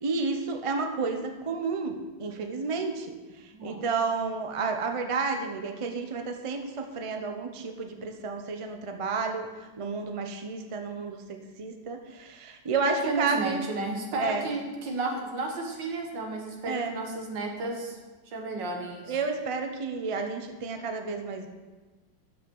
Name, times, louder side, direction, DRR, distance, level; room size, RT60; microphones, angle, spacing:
voice 1, 0.0-3.1 3.6-9.5 9.8-13.6 14.2-14.5 16.7-17.0 19.1-21.5, right 4 dB, 45° right, 5 dB, 0.4 m, -31 dB
voice 2, 12.9-18.0 18.3-19.2, right 3 dB, 75° right, 2 dB, 2.1 m, -32 dB
12.5 x 5.6 x 5.4 m, 1.2 s
omnidirectional pair, 2.0 m